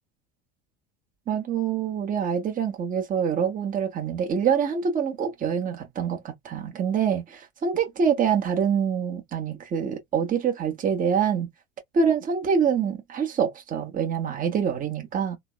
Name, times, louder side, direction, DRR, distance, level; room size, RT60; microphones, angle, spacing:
voice 1, 1.3-11.5 11.9-15.4, right 7 dB, 25° right, 0.9 m, -25 dB
3.3 x 2.0 x 2.2 m
hypercardioid pair, 95°, 31 cm